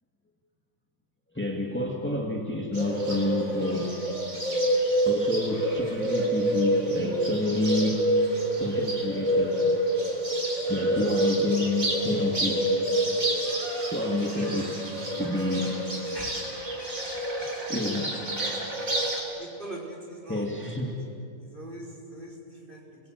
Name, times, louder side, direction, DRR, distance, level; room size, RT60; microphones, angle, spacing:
voice 1, 1.3-4.0 5.0-8.1 8.6-9.8 10.7-12.7 13.9-15.8 17.4-18.9 20.3-21.0, left 2 dB, 10° left, 0 dB, 2.3 m, -29 dB
Bird, 2.7-19.2, right 1 dB, 65° right, 4.7 m, -27 dB
voice 2, 19.4-21.0 21.4-23.0, right 1 dB, 35° right, -2 dB, 5.6 m, -42 dB
28.5 x 22.0 x 9.6 m, 2.6 s
omnidirectional pair, 1.5 m